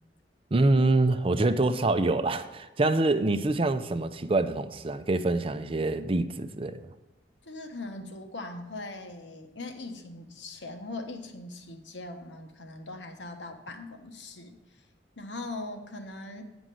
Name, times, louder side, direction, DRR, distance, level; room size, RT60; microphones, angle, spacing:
voice 1, 0.5-6.9, right 2 dB, 30° right, 0.5 m, -25 dB
voice 2, 7.4-14.8 15.2-16.4, left 2 dB, 75° left, 1.2 m, -40 dB
9.7 x 5.2 x 7.6 m
head